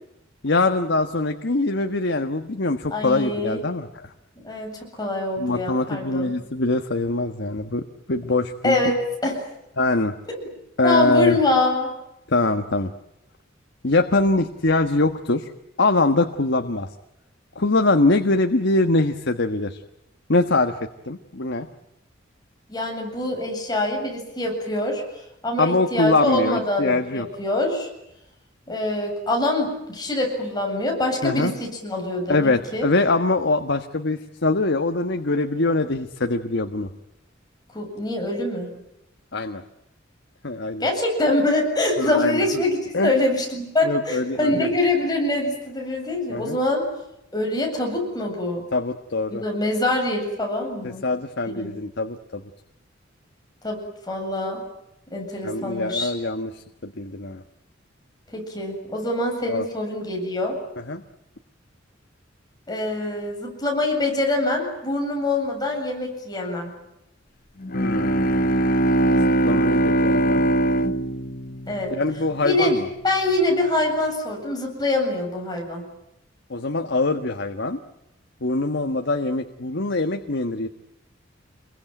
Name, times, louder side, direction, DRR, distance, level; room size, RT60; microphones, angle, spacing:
voice 1, 0.4-3.9 5.4-7.8 8.1-8.9 9.8-10.1 10.8-11.4 12.3-12.9 13.8-15.5 15.8-16.9 17.5-19.8 20.3-20.8 21.0-21.7 25.6-27.3 31.2-31.5 32.3-36.9 39.3-39.6 40.4-40.9 42.0-42.4 42.9-43.1 43.8-44.7 46.3-46.6 48.7-49.4 50.8-52.4 55.4-57.4 59.5-59.6 60.9-61.0 67.7-68.4 69.4-70.5 71.9-72.8 76.5-77.8 78.4-80.7, left 2 dB, 65° left, 6 dB, 1.5 m, -23 dB
voice 2, 2.9-3.6 4.4-6.3 8.6-9.5 10.3-10.4 10.8-11.9 22.7-25.0 25.4-27.9 28.7-32.9 37.7-38.7 40.8-46.9 47.3-48.7 49.3-51.1 51.5-51.7 53.6-54.6 55.1-56.1 58.3-60.6 62.7-66.7 71.7-71.9 72.4-72.8 73.0-75.8, left 2 dB, 20° left, 1 dB, 7.9 m, -24 dB
Bowed string instrument, 67.6-72.4, right 1 dB, 45° left, 1.1 m, -21 dB
28.0 x 22.5 x 9.2 m, 0.85 s
head